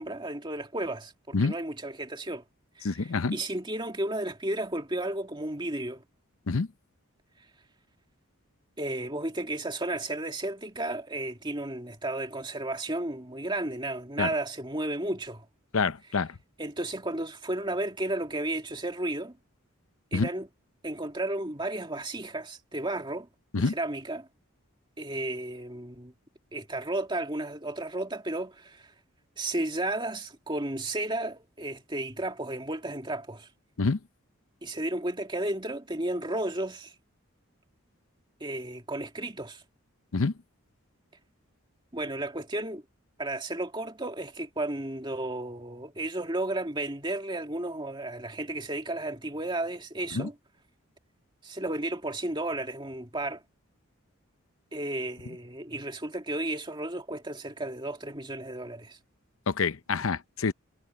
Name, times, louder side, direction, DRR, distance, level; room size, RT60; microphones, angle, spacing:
voice 1, 0.0-2.4 2.8-6.0 8.8-15.5 16.6-19.4 20.1-20.5 20.8-23.3 23.6-24.3 25.0-26.1 26.5-28.9 29.4-33.5 34.6-36.9 38.4-39.6 41.9-42.8 43.2-50.4 51.4-53.4 54.7-59.0, right 1 dB, 20° right, 2.4 m, -33 dB
voice 2, 2.8-3.4 6.5-6.7 14.2-14.3 15.7-16.3 20.1-20.3 23.5-23.7 33.8-34.0 40.1-40.3 50.1-50.3 59.5-60.5, left 4 dB, 70° left, 0.7 m, -27 dB
head